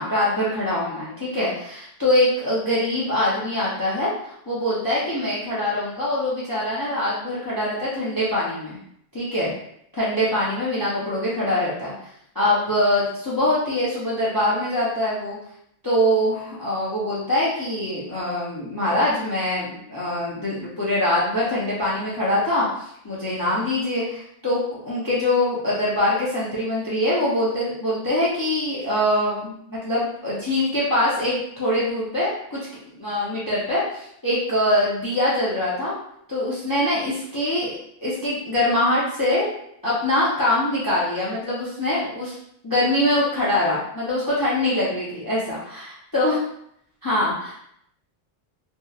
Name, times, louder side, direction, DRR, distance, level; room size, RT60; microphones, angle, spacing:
voice 1, 0.0-8.8 9.1-9.5 10.0-11.9 12.3-15.4 15.8-32.6 33.0-35.9 36.3-37.7 38.0-39.5 39.8-42.3 42.6-46.4 47.0-47.7, left 1 dB, 30° left, -8 dB, 0.4 m, -23 dB
2.7 x 2.1 x 2.3 m, 0.72 s
omnidirectional pair, 1.1 m